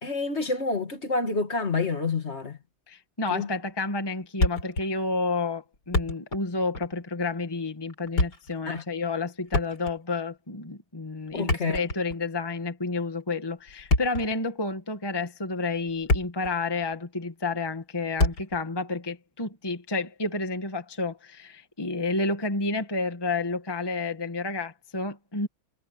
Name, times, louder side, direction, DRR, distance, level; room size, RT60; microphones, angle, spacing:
voice 1, 0.0-2.6 3.3-3.5 8.7-8.8 11.3-11.8, left 3 dB, 40° left, 2.2 m, -28 dB
voice 2, 2.9-25.5, left 3 dB, 15° left, 1.4 m, -30 dB
Thump thud, 4.4-4.9 5.2-5.3 5.7-6.5 6.7-6.9 7.9-8.5 9.5-10.1 11.3-12.3 13.7-14.3 15.1-15.2 15.8-16.6 16.8-16.9 18.2-18.6, left 2 dB, 85° left, 5.5 m, -26 dB
omnidirectional pair, 1.7 m